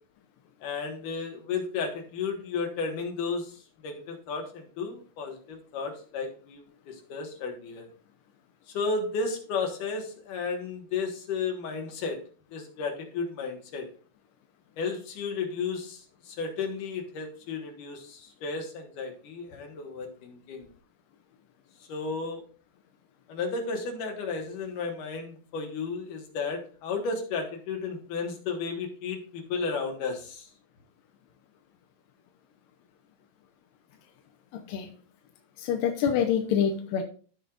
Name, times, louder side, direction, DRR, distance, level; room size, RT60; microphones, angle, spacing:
voice 1, 0.6-7.9 8.7-12.2 12.5-13.9 14.8-20.7 21.9-22.4 23.3-30.5, left 4 dB, 60° left, 2 dB, 2.7 m, -33 dB
voice 2, 35.6-37.0, left 8 dB, 80° left, 4 dB, 2.0 m, -26 dB
14.5 x 5.5 x 2.5 m, 0.41 s
omnidirectional pair, 4.9 m